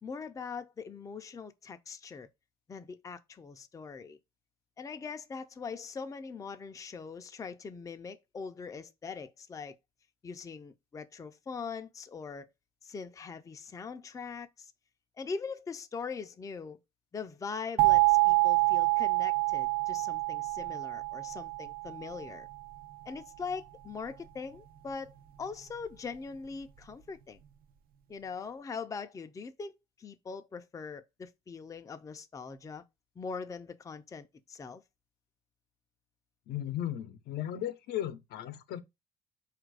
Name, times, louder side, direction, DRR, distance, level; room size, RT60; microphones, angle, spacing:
voice 1, 0.0-2.3 2.7-4.2 4.8-9.8 10.2-12.5 12.8-14.7 15.2-16.8 17.1-22.5 23.1-27.4 28.1-32.8 33.2-34.8, left 5 dB, 20° left, 0.4 m, -42 dB
sound 1, 17.8-22.5, right 25 dB, 60° right, 0.5 m, -27 dB
voice 2, 36.5-38.8, left 11 dB, 75° left, 0.6 m, -36 dB
4.4 x 2.5 x 4.7 m
cardioid pair, 110°, 17 cm